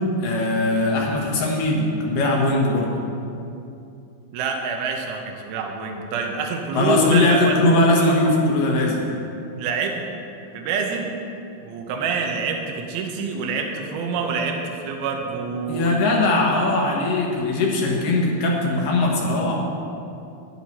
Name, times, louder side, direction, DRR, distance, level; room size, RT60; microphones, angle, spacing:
voice 1, 0.2-2.9 6.7-9.0 15.7-19.6, left 2 dB, 65° left, -1 dB, 2.9 m, -20 dB
voice 2, 4.3-7.6 9.6-10.0 10.5-11.1 11.6-16.1, right 5 dB, 80° right, 2 dB, 2.9 m, -27 dB
12.0 x 10.5 x 4.3 m, 2.7 s
omnidirectional pair, 4.4 m